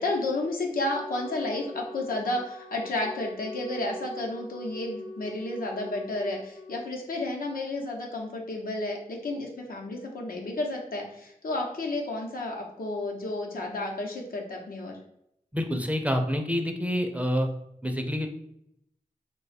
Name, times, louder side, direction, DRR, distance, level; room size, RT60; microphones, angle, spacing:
voice 1, 0.0-15.0, left 2 dB, 85° left, 0 dB, 0.7 m, -32 dB
Wind instrument woodwind instrument, 0.8-6.9, left 2 dB, 45° left, 0.7 m, -42 dB
voice 2, 15.5-17.5 17.8-18.3, equal, 10° right, 4 dB, 0.4 m, -27 dB
2.9 x 2.2 x 4.1 m, 0.77 s
wide cardioid pair, 75°, 14 cm